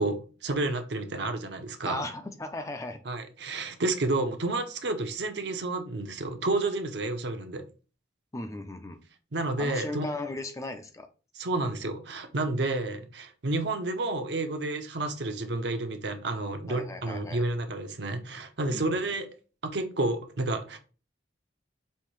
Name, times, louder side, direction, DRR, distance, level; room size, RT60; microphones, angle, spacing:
voice 1, 0.0-2.0 3.1-7.6 9.3-10.1 11.3-19.3 19.6-20.8, right 2 dB, 65° right, 0.7 m, -30 dB
voice 2, 1.8-3.0 8.3-9.0 9.6-11.1 16.7-17.4 18.7-19.0, left 2 dB, 15° left, 0.4 m, -37 dB
5.5 x 2.7 x 3.1 m
head